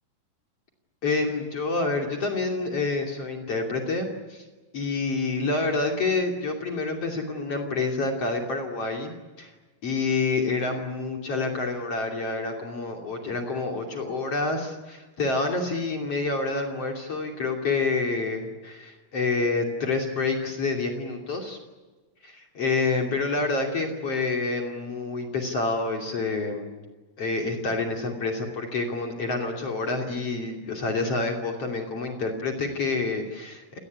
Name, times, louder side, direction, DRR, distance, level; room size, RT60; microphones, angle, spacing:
voice 1, 1.0-4.4 4.7-9.5 9.8-21.6 22.2-26.8 27.2-33.8, left 3 dB, 45° left, 2 dB, 3.7 m, -28 dB
27.5 x 19.5 x 9.8 m, 1.3 s
omnidirectional pair, 4.2 m